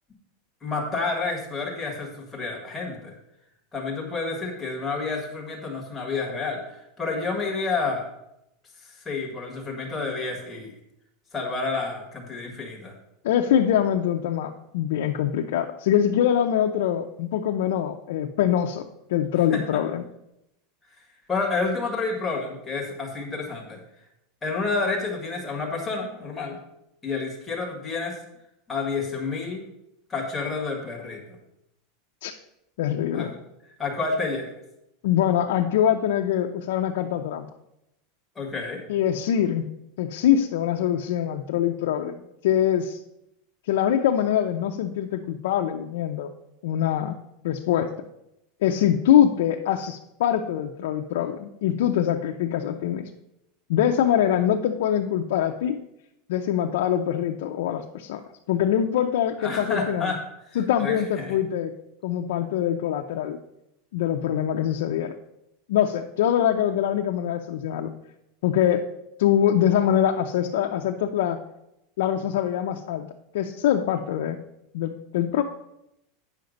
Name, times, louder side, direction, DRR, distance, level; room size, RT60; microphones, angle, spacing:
voice 1, 0.6-3.1 3.7-8.0 8.8-10.7 11.3-12.9 19.5-19.6 21.3-23.8 24.4-26.6 27.0-28.2 28.7-29.6 30.1-31.2 33.1-33.3 33.8-34.5 38.4-38.8 59.4-60.2 60.8-61.3, left 4 dB, 10° left, -1 dB, 1.7 m, -29 dB
voice 2, 13.2-18.8 19.1-20.0 32.2-32.3 32.8-33.3 35.0-37.5 38.9-39.7 40.0-43.0 43.7-46.3 46.6-47.1 47.4-47.9 48.6-53.1 53.7-55.8 56.3-58.2 58.5-60.1 60.6-61.7 62.0-63.4 63.9-65.1 65.7-67.9 68.4-68.8 69.2-71.4 72.0-73.1 73.3-74.4 74.7-75.4, left 10 dB, 70° left, 2 dB, 0.6 m, -23 dB
9.2 x 5.8 x 5.2 m, 0.84 s
supercardioid pair, 165°, 0 cm